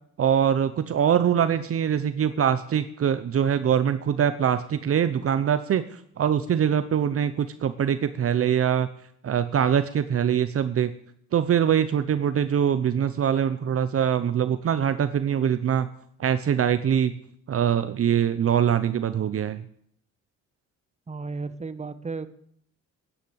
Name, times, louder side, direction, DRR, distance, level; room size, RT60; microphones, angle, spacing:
voice 1, 0.2-8.9 9.2-10.9 11.3-15.9 16.2-17.1 17.5-19.6, right 8 dB, 50° right, 12 dB, 0.8 m, -23 dB
voice 2, 21.1-22.3, right 4 dB, 20° right, 12 dB, 1.2 m, -34 dB
10.5 x 9.9 x 8.1 m, 0.67 s
cardioid pair, 90°, 30 cm